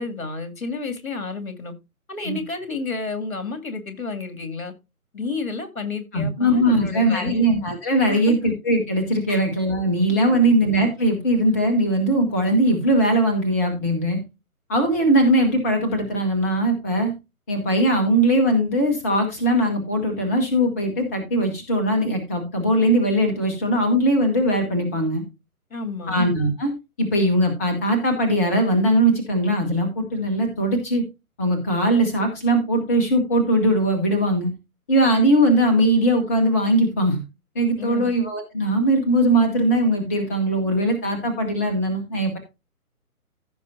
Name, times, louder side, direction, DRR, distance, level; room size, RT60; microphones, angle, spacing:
voice 1, 0.0-1.7 2.1-4.7 5.1-7.5 8.1-8.4 9.3-9.5 10.3-10.6 25.7-26.2 37.8-38.1, left 4 dB, 65° left, 7 dB, 2.7 m, -31 dB
voice 2, 6.1-14.2 14.7-17.1 17.5-25.2 26.1-26.7 27.0-31.0 31.4-34.5 34.9-37.2 37.5-42.4, right 1 dB, 10° left, 5 dB, 0.8 m, -20 dB
15.0 x 6.5 x 2.6 m, 0.25 s
figure-of-eight pair, 140°, 45 cm